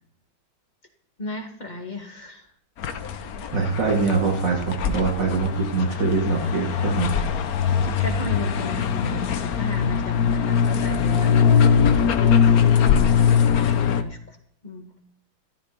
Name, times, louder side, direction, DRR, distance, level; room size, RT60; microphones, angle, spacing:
voice 1, 1.2-2.5 7.8-14.4 14.6-15.0, left 1 dB, 25° left, 3 dB, 1.7 m, -35 dB
sound 1, 2.8-14.0, left 7 dB, 60° left, 1.2 m, -21 dB
voice 2, 3.5-7.1, right 4 dB, 60° right, -4 dB, 3.3 m, -23 dB
14.0 x 12.5 x 4.0 m, 0.67 s
omnidirectional pair, 2.1 m